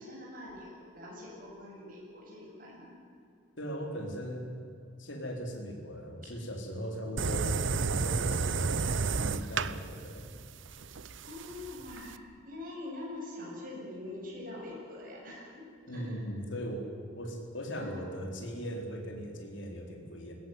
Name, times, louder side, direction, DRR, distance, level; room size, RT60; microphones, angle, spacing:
voice 1, 0.0-3.0 11.2-16.2 17.7-18.0, left 2 dB, 45° right, -3 dB, 7.8 m, -44 dB
voice 2, 3.6-4.5 5.0-8.8 9.1-10.2 15.9-16.9 17.2-20.3, equal, 65° left, 2 dB, 4.1 m, -39 dB
sound 1, 7.2-12.2, right 4 dB, 70° right, 0.8 m, -32 dB
21.0 x 17.0 x 9.6 m, 2.4 s
head